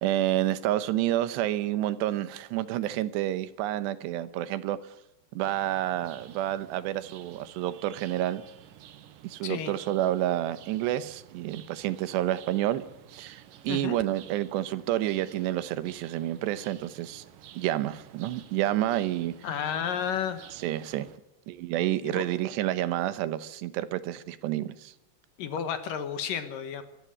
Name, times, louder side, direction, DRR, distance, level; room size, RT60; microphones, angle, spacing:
voice 1, 0.0-4.8 5.3-8.4 9.2-17.2 17.6-19.3 20.6-21.1 21.5-24.9, right 13 dB, 85° right, 14 dB, 3.2 m, -29 dB
sound 1, 5.4-21.2, right 10 dB, 65° right, 2.6 m, -52 dB
voice 2, 9.4-9.7 13.7-14.0 19.4-20.5 22.0-22.2 25.4-26.8, left 8 dB, 65° left, 10 dB, 2.6 m, -32 dB
24.0 x 14.5 x 10.0 m, 0.84 s
omnidirectional pair, 4.8 m